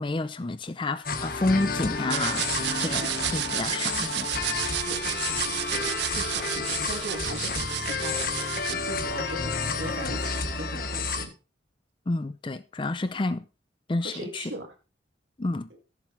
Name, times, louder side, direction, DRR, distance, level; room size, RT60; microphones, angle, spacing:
voice 1, 0.0-4.3 12.1-13.4 13.9-14.4 15.4-15.7, left 2 dB, 25° left, 0.5 m, -29 dB
sound 1, 1.0-11.3, left 4 dB, 50° left, 1.3 m, -31 dB
sound 2, 2.1-8.7, right 14 dB, 60° right, 0.4 m, -31 dB
voice 2, 4.8-11.3 14.0-14.7 15.7-15.8, right 1 dB, 75° right, 2.1 m, -39 dB
14.5 x 7.4 x 3.2 m
head